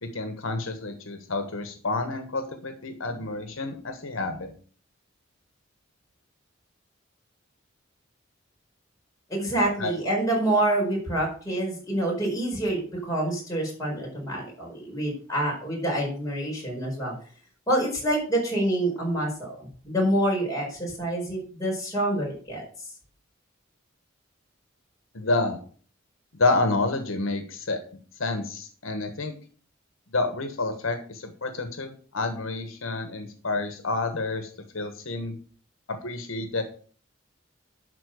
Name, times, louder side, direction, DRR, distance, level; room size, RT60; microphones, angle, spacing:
voice 1, 0.0-4.5 9.8-10.0 25.1-25.6 26.4-27.8 28.2-29.3 30.1-35.4 35.9-36.6, left 3 dB, 80° left, 7 dB, 1.3 m, -29 dB
voice 2, 9.3-17.1 17.7-22.9, right 1 dB, 15° left, -3 dB, 4.9 m, -27 dB
11.5 x 4.5 x 6.5 m, 0.43 s
head